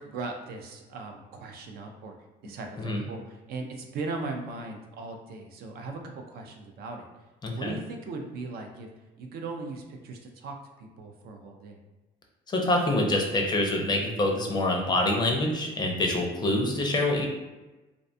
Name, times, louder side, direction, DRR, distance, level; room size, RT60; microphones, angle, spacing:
voice 1, 0.0-2.1 2.4-7.1 7.6-8.9 9.2-11.8, right 3 dB, 65° right, 3 dB, 0.4 m, -38 dB
voice 2, 7.4-7.8 12.5-17.3, left 1 dB, 25° left, 1 dB, 0.4 m, -26 dB
2.5 x 2.2 x 2.6 m, 1.1 s
cardioid pair, 110°, 17 cm